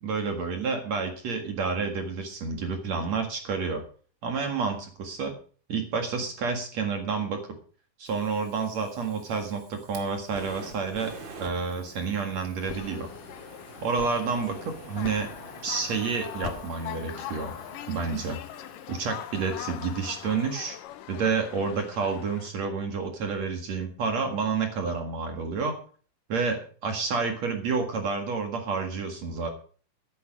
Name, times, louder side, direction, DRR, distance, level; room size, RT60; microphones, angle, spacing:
voice 1, 0.0-3.8 4.2-5.4 5.7-7.4 8.0-13.1 13.8-15.3 15.6-17.5 17.9-20.8 21.1-25.8 26.3-29.5, right 5 dB, 55° right, 5 dB, 2.8 m, -29 dB
Fire, 8.0-21.2, right 4 dB, 35° right, 2.6 m, -48 dB
sound 1, 12.6-22.5, left 13 dB, 80° left, 2.4 m, -42 dB
sound 2, 12.7-14.6 15.0-15.5 16.4-16.9, left 5 dB, 50° left, 2.4 m, -43 dB
13.5 x 10.5 x 5.1 m, 0.41 s
omnidirectional pair, 4.0 m